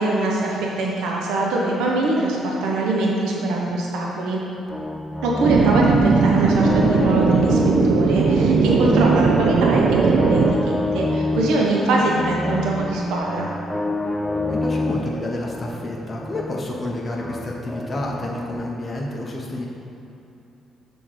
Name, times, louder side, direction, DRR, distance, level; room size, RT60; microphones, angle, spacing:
voice 1, 0.0-4.4 5.2-7.6 7.8-13.5, right 2 dB, 90° right, -3 dB, 1.0 m, -23 dB
sound 1, 4.7-18.7, left 2 dB, 10° left, 0.5 m, -28 dB
sound 2, 5.4-10.5, right 4 dB, 65° right, 0.5 m, -18 dB
voice 2, 11.3-11.7 14.5-19.7, left 1 dB, 30° left, -2 dB, 1.0 m, -29 dB
6.9 x 3.8 x 6.3 m, 2.7 s
cardioid pair, 90°, 0 cm